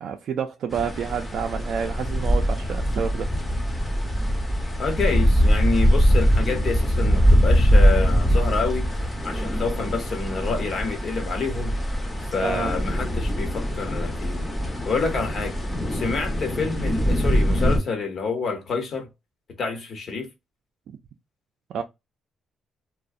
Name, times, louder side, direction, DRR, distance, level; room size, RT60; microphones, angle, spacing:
voice 1, 0.0-3.3 12.4-12.7 21.7-21.8, right 7 dB, 70° right, 0.3 m, -29 dB
sound 1, 0.7-17.8, equal, 15° left, 0.7 m, -22 dB
voice 2, 4.8-8.9 9.2-11.7 12.3-14.5 14.8-15.6 15.9-19.1 19.6-20.3, left 4 dB, 55° left, 0.9 m, -28 dB
2.5 x 2.1 x 2.4 m
cardioid pair, 90°, 0 cm